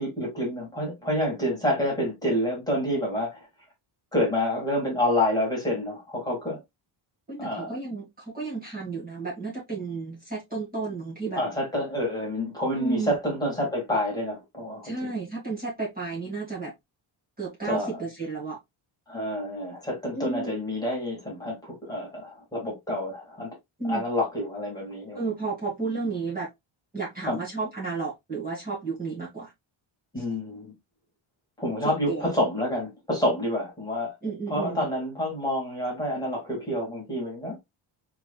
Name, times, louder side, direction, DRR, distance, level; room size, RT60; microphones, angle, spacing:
voice 1, 0.0-3.4 4.1-6.6 7.4-7.7 11.3-15.1 17.6-18.0 19.1-23.5 23.8-25.2 27.2-27.4 30.1-30.7 31.6-34.1 34.5-37.6, left 1 dB, 10° left, 2.2 m, -28 dB
voice 2, 7.3-11.4 12.8-13.1 14.8-16.7 17.4-18.6 20.1-20.5 23.8-24.0 25.2-26.5 26.9-29.5 30.2-30.3 31.8-32.3 34.2-34.8, right 4 dB, 20° right, 2.0 m, -32 dB
4.8 x 3.4 x 2.3 m
cardioid pair, 150°, 49 cm